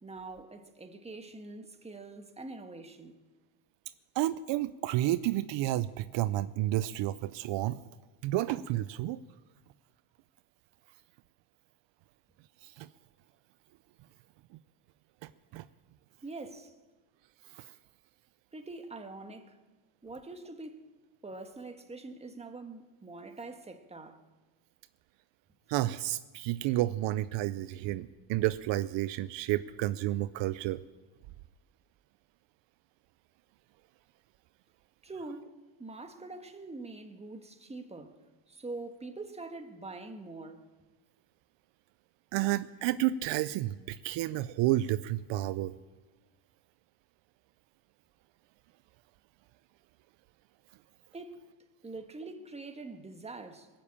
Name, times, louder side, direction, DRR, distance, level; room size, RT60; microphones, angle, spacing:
voice 1, 0.0-3.2 16.2-16.7 18.5-19.6 20.0-20.9 21.2-24.2 35.0-38.2 38.5-40.7 51.1-51.4 51.8-53.7, right 3 dB, 15° right, 1.4 m, -44 dB
voice 2, 4.2-7.8 8.2-9.2 12.6-12.9 15.5-15.6 25.7-30.8 42.3-45.7, right 15 dB, 65° right, 0.6 m, -30 dB
22.0 x 7.5 x 8.6 m
cardioid pair, 110°, 47 cm